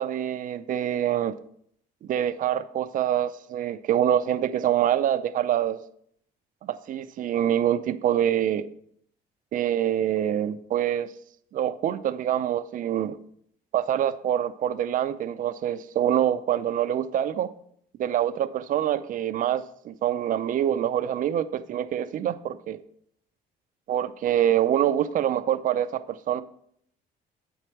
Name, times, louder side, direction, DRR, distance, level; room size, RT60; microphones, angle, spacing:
voice 1, 0.0-1.4 2.1-5.8 6.6-8.7 9.5-11.1 11.5-13.2 13.7-17.5 18.0-22.8 23.9-26.4, right 10 dB, 50° right, 12 dB, 0.5 m, -25 dB
7.9 x 4.5 x 6.0 m, 0.67 s
cardioid pair, 110°, 17 cm